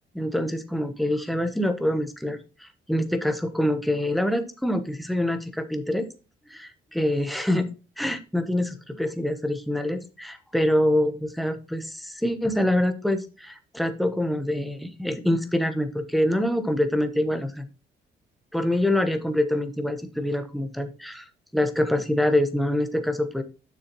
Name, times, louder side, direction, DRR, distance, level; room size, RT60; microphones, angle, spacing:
voice 1, 0.1-6.1 6.5-7.7 8.0-17.7 18.5-21.3 21.5-23.4, left 1 dB, ahead, 8 dB, 1.0 m, -25 dB
7.0 x 6.5 x 3.0 m, 0.34 s
cardioid pair, 90°, 20 cm